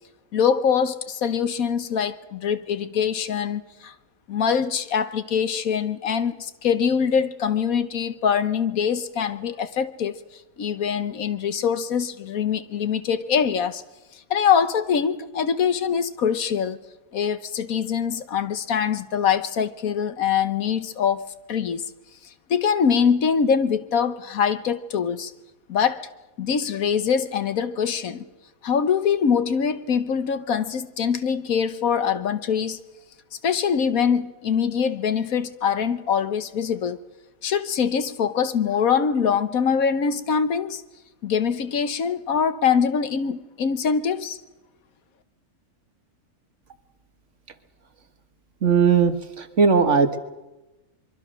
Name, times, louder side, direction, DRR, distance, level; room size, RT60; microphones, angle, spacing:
voice 1, 0.3-3.9 4.3-10.2 10.6-13.8 14.3-16.8 17.1-21.8 22.5-25.3 25.7-26.0 26.4-28.2 28.6-32.8 33.4-37.0 37.4-40.8 41.2-44.4, left 7 dB, 75° left, 1.5 m, -23 dB
voice 2, 48.6-50.2, right 5 dB, 55° right, 1.8 m, -18 dB
24.5 x 23.0 x 6.4 m
omnidirectional pair, 1.5 m